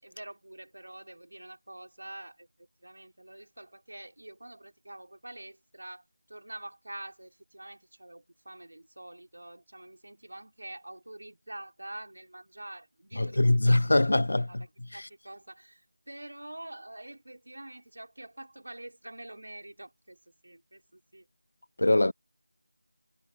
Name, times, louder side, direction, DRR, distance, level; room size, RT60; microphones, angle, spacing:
voice 1, 0.0-14.0 14.5-14.6 14.9-21.3, right 1 dB, 65° right, 4.5 m, -46 dB
voice 2, 13.2-14.6 21.8-22.1, left 2 dB, 50° left, 0.5 m, -23 dB
figure-of-eight pair, 180°, 0 cm